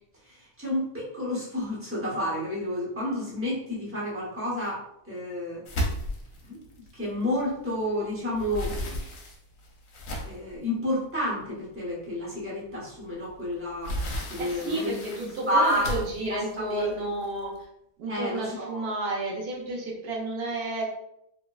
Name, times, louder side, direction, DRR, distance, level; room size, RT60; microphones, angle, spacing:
voice 1, 0.2-5.6 6.4-6.6 6.9-9.1 10.2-13.9 14.3-16.0 16.3-17.1 17.4-17.5 18.1-18.8, left 1 dB, 10° right, -7 dB, 0.7 m, -30 dB
sound 1, 5.7-7.8 8.2-10.6 11.2-11.3 11.8-11.9 13.3-17.6, left 1 dB, 65° left, 1.0 m, -34 dB
voice 2, 14.4-17.5 18.0-20.8, right 2 dB, 85° right, -2 dB, 1.3 m, -31 dB
3.4 x 2.1 x 2.3 m, 0.77 s
omnidirectional pair, 1.6 m